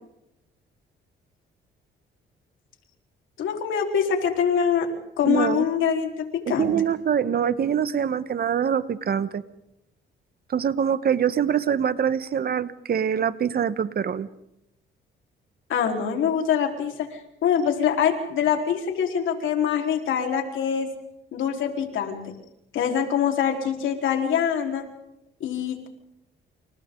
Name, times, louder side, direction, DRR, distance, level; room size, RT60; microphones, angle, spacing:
voice 1, 3.4-4.9 5.2-6.7 15.7-20.9 21.3-22.2 22.7-24.8 25.4-25.9, left 8 dB, 80° left, 3 dB, 4.4 m, -24 dB
voice 2, 5.2-5.7 6.5-9.4 10.5-14.3, right 8 dB, 50° right, 14 dB, 1.3 m, -24 dB
29.5 x 29.5 x 3.9 m, 0.84 s
cardioid pair, 90°, 20 cm